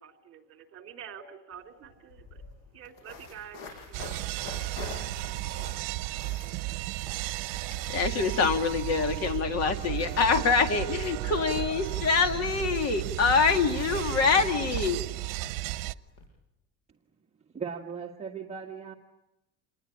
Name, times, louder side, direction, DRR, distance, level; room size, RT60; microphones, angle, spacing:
voice 1, 0.0-2.4 2.7-4.1, right 8 dB, 45° right, 5 dB, 3.3 m, -47 dB
sound 1, 1.5-1.6 1.8-16.3, left 4 dB, 85° left, 7.0 m, -48 dB
sound 2, 3.9-15.9, right 18 dB, 85° right, 0.9 m, -34 dB
voice 2, 7.9-15.1, left 5 dB, 50° left, 7 dB, 2.4 m, -25 dB
voice 3, 17.5-18.9, right 6 dB, 20° right, 0 dB, 1.5 m, -37 dB
28.0 x 20.5 x 9.8 m, 0.95 s
cardioid pair, 160°, 32 cm